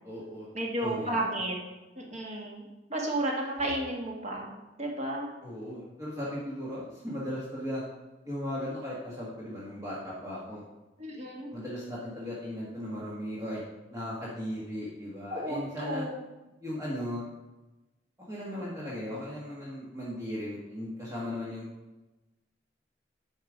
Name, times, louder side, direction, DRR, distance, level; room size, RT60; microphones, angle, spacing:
voice 1, 0.0-0.5 0.8-1.3 5.4-7.8 8.2-10.6 11.5-13.6 13.9-16.0 16.6-17.3 18.2-21.6, left 1 dB, 20° right, -7 dB, 1.7 m, -37 dB
voice 2, 0.5-1.5 1.9-2.6 2.9-5.3 11.0-11.5 15.3-16.1, right 1 dB, 40° right, -1 dB, 1.6 m, -32 dB
8.9 x 5.3 x 5.1 m, 1.1 s
head